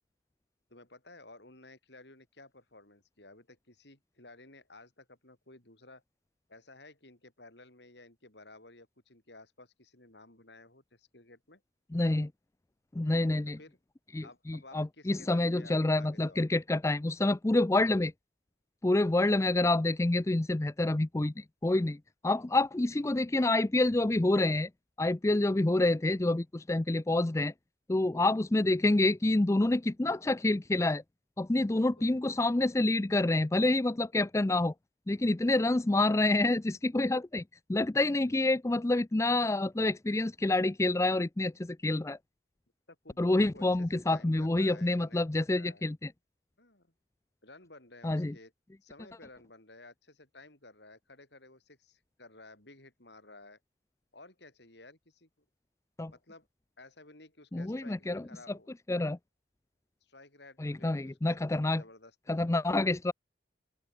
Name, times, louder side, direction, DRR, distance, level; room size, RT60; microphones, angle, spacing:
voice 1, 0.7-6.0 6.5-11.6 13.4-13.8 14.2-16.5 31.7-32.1 38.3-38.4 42.9-45.8 46.6-46.9 47.4-48.5 48.8-53.6 54.1-55.3 56.1-56.5 56.8-58.7 60.0-62.4, left 2 dB, 60° left, 5.0 m, -55 dB
voice 2, 11.9-12.3 12.9-13.6 14.1-18.1 18.8-24.7 25.0-27.5 27.9-31.0 31.4-34.7 35.1-37.4 37.7-42.2 43.2-46.1 48.0-48.3 56.0-56.1 57.5-58.2 58.9-59.2 60.6-61.8 62.3-63.1, left 2 dB, 15° left, 0.4 m, -27 dB
open air
head